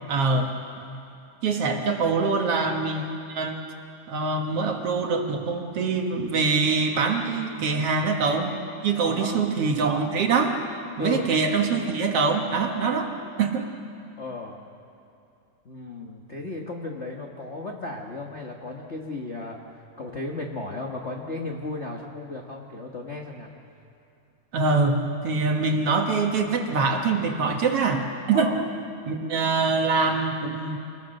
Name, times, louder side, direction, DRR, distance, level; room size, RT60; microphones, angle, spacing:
voice 1, 0.1-0.5 1.4-3.6 4.1-10.6 11.0-13.1 13.4-13.7 24.5-28.5 29.1-30.8, right 4 dB, 55° right, 3 dB, 2.0 m, -24 dB
voice 2, 9.0-9.4 11.0-11.3 14.2-14.6 15.6-19.6 20.0-23.5 28.3-28.6, left 2 dB, 60° left, -1 dB, 0.7 m, -34 dB
27.5 x 21.0 x 6.6 m, 2.6 s
omnidirectional pair, 3.7 m